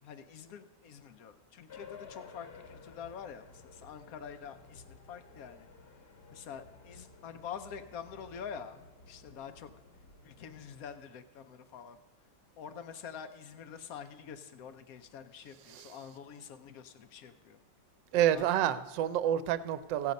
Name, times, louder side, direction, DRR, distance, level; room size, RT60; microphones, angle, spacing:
voice 1, 0.0-5.7 6.3-9.7 10.2-12.0 12.6-17.6 18.3-18.7, left 7 dB, 85° left, 10 dB, 0.7 m, -46 dB
sound 1, 1.7-10.8, left 4 dB, 45° left, 0.8 m, -54 dB
voice 2, 18.1-20.1, right 11 dB, 75° right, 14 dB, 1.2 m, -29 dB
15.5 x 8.2 x 5.2 m, 1.2 s
omnidirectional pair, 2.1 m